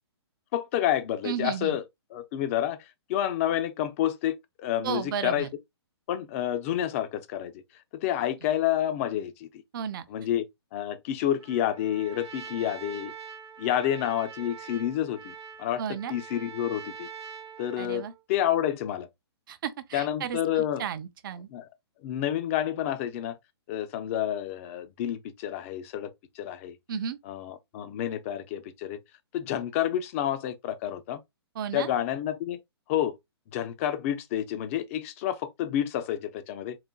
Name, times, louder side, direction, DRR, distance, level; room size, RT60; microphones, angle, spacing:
voice 1, 0.5-1.8 2.1-5.5 6.1-7.5 7.9-9.6 10.1-10.4 10.7-13.1 13.6-15.8 16.1-17.1 17.6-19.1 19.9-20.8 21.5-21.7 22.0-23.4 23.7-26.8 27.2-29.0 29.3-31.2 31.7-32.6 32.9-33.2 33.5-36.8, left 11 dB, 30° left, 0.4 m, -29 dB
voice 2, 1.2-1.8 4.8-5.5 9.7-10.0 15.8-16.1 17.8-18.1 19.5-21.5 26.9-27.2 31.6-31.9, right 8 dB, 50° right, 0.5 m, -33 dB
Trumpet, 11.4-18.2, right 6 dB, 70° right, 0.8 m, -44 dB
4.0 x 2.1 x 2.2 m
hypercardioid pair, 150°, 14 cm